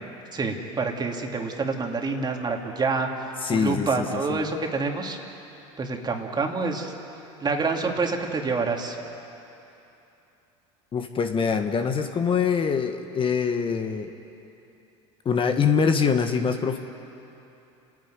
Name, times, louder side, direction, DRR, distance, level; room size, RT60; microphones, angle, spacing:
voice 1, 0.3-3.1 3.5-5.2 5.8-6.9 7.4-9.0, right 4 dB, 25° right, 2 dB, 2.8 m, -27 dB
voice 2, 3.4-4.5 10.9-14.1 15.2-16.8, left 6 dB, 35° left, 6 dB, 1.3 m, -24 dB
29.5 x 10.5 x 9.5 m, 2.9 s
hypercardioid pair, 85°, 16 cm